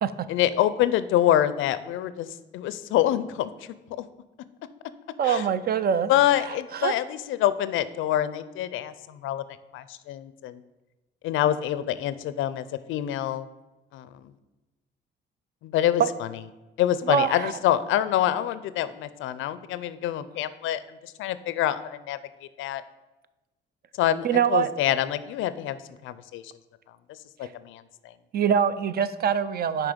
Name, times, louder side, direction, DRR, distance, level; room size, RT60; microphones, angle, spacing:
voice 1, 0.3-4.1 5.2-5.5 6.1-9.4 9.7-10.6 11.2-13.5 13.9-14.3 15.6-16.4 16.8-22.8 24.0-26.5 27.4-28.1, left 12 dB, 85° left, 14 dB, 0.4 m, -26 dB
voice 2, 5.2-6.1 6.7-6.9 16.0-16.1 17.1-17.5 24.2-24.7 27.4-27.5 28.3-29.9, right 8 dB, 50° right, 14 dB, 0.4 m, -24 dB
6.0 x 4.5 x 5.0 m, 1.1 s
cardioid pair, 90°, 20 cm